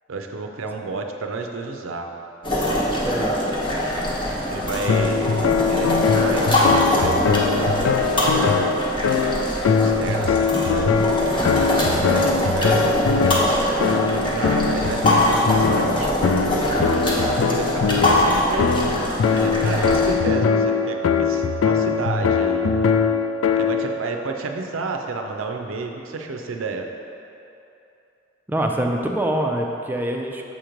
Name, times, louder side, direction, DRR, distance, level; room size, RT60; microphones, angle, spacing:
voice 1, 0.1-2.1 4.5-5.3 5.7-7.4 8.0-8.8 9.8-10.9 11.6-12.8 13.8-16.1 17.5-22.7 23.6-26.9, right 3 dB, 85° right, 3 dB, 0.5 m, -30 dB
sound 1, 2.4-20.1, left 1 dB, 25° left, 1.0 m, -23 dB
voice 2, 3.0-3.4 28.5-30.4, right 1 dB, 10° right, 1 dB, 0.4 m, -24 dB
sound 2, 4.9-23.9, left 5 dB, 75° left, 0.3 m, -21 dB
7.2 x 3.0 x 5.0 m, 2.9 s
head